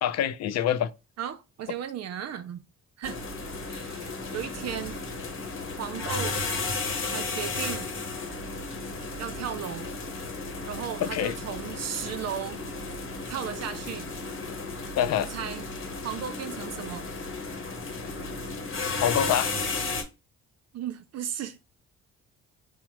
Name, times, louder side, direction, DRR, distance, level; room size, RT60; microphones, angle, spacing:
voice 1, 0.0-0.9 11.0-11.3 15.0-15.3 19.0-19.5, left 10 dB, 60° left, 0.5 m, -25 dB
voice 2, 1.2-2.6 3.0-3.2 3.7-5.0 5.8-6.4 7.1-7.9 9.2-9.9 10.7-12.6 13.3-14.1 15.3-15.6 16.0-17.1 20.7-21.6, right 9 dB, 60° right, 0.5 m, -35 dB
sound 1, 3.0-20.0, left 3 dB, 40° left, 1.0 m, -34 dB
4.6 x 2.1 x 3.0 m
cardioid pair, 90°, 30 cm